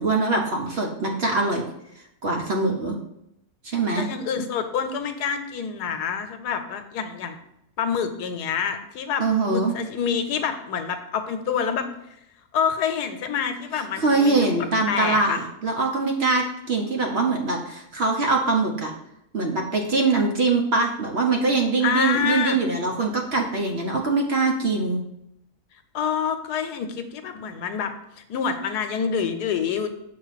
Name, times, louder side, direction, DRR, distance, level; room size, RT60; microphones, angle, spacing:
voice 1, 0.0-1.6 2.2-3.0 3.6-4.1 9.2-9.7 14.0-18.9 19.3-25.0, right 3 dB, 50° right, 1 dB, 0.9 m, -23 dB
voice 2, 4.0-7.4 7.8-11.9 12.5-14.5 14.9-15.4 21.8-22.6 25.9-30.0, left 7 dB, 90° left, 8 dB, 1.2 m, -27 dB
6.6 x 2.9 x 5.7 m, 0.80 s
omnidirectional pair, 1.7 m